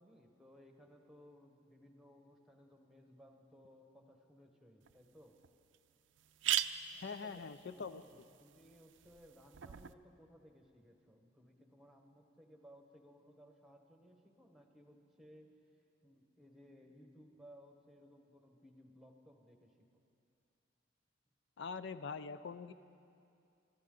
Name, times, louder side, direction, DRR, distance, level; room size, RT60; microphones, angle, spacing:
voice 1, 0.0-5.4 6.9-15.5 16.0-20.0, equal, ahead, 3 dB, 1.2 m, -61 dB
sound 1, 4.9-5.0 5.4-5.5 5.7-5.8 6.2-9.9, right 12 dB, 70° right, 0.4 m, -40 dB
voice 2, 7.0-8.0 21.6-22.7, left 5 dB, 65° left, 13 dB, 0.5 m, -43 dB
24.5 x 13.5 x 3.8 m, 2.6 s
head